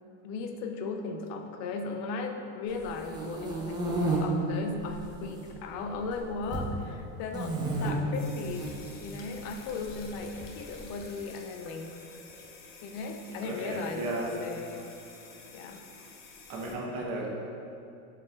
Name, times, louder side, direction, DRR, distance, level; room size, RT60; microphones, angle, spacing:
voice 1, 0.2-12.0 12.8-14.8 15.5-15.8, left 4 dB, 50° left, 5 dB, 0.4 m, -37 dB
sound 1, 2.8-4.2 4.8-5.4 5.7-6.7 7.3-7.9 8.5-8.7 9.8-10.8, right 2 dB, 10° right, 0.4 m, -32 dB
sound 2, 8.1-16.7, left 4 dB, 80° left, 0.7 m, -50 dB
voice 2, 13.4-14.3 14.7-14.8 16.5-17.3, right 2 dB, 60° right, -2 dB, 1.0 m, -34 dB
6.8 x 3.3 x 2.2 m, 2.6 s
supercardioid pair, 145°, 36 cm